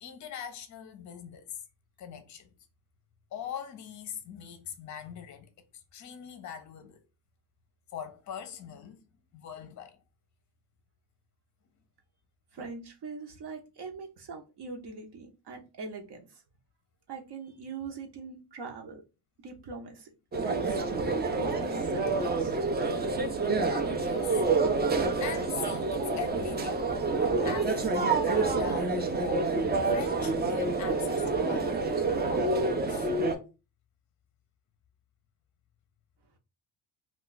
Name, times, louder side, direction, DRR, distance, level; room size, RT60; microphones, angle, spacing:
voice 1, 0.0-1.6 2.0-2.5 3.3-5.5 5.9-7.0 7.9-9.0 9.3-10.0 24.0-24.4 24.9-26.8 27.4-29.5 29.9-33.1, left 8 dB, 40° left, 0.6 m, -42 dB
voice 2, 12.5-16.4 17.1-19.0 19.4-20.1 20.4-21.1 21.4-22.6, right 4 dB, 55° right, 0.8 m, -42 dB
sound 1, 20.3-33.3, right 3 dB, 20° right, 0.4 m, -28 dB
2.3 x 2.3 x 3.8 m
cardioid pair, 110°, 48 cm